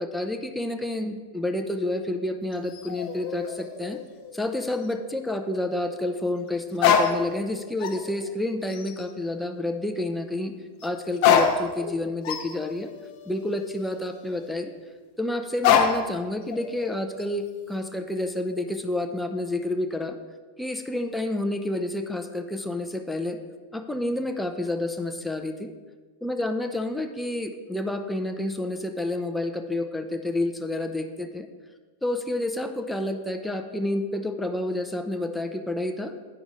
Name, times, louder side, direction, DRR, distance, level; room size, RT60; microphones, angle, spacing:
voice 1, 0.0-4.0 4.3-10.5 10.8-12.9 13.3-14.7 15.2-20.2 20.6-23.4 23.7-25.7 26.2-31.5 32.0-36.1, left 1 dB, 5° left, 5 dB, 0.6 m, -29 dB
sound 1, 2.5-4.6 4.8-4.9 6.8-7.5 7.8-8.3 8.7-9.1 10.8-10.9 11.2-14.5 15.6-16.2 16.5-17.2, left 7 dB, 45° left, 0.8 m, -26 dB
8.7 x 5.9 x 4.0 m, 1.4 s
figure-of-eight pair, 90°, 0 cm